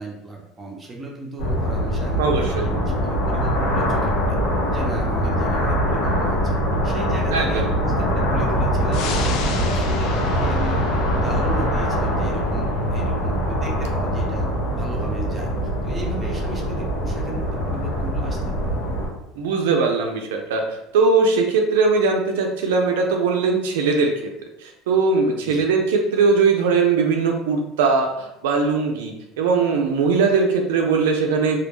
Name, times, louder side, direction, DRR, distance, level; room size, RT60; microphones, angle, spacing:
voice 1, 0.0-4.4 4.7-6.6 6.8-14.5 14.7-15.5 15.8-18.8 25.4-25.7, right 2 dB, 20° right, -1 dB, 0.7 m, -35 dB
sound 1, 1.4-19.1, equal, 85° left, 0.8 m, -23 dB
voice 2, 2.2-2.7 7.3-7.6 19.4-24.1 24.6-31.6, right 4 dB, 90° right, 3 dB, 0.3 m, -20 dB
sound 2, 8.9-19.9 20.3-20.4, left 5 dB, 65° left, 0.3 m, -37 dB
2.2 x 2.1 x 3.1 m, 0.84 s
supercardioid pair, 105°, 0 cm